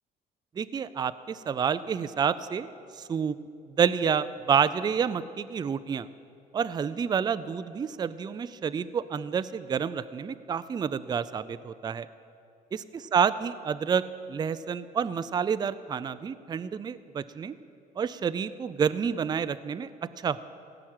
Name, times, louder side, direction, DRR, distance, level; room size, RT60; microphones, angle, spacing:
voice 1, 0.6-2.7 3.0-3.3 3.8-6.1 6.5-12.1 12.7-14.0 14.3-17.6 18.0-19.9 20.2-20.4, right 7 dB, 25° right, 14 dB, 0.4 m, -29 dB
16.5 x 6.0 x 8.9 m, 2.4 s
cardioid pair, 110°, 17 cm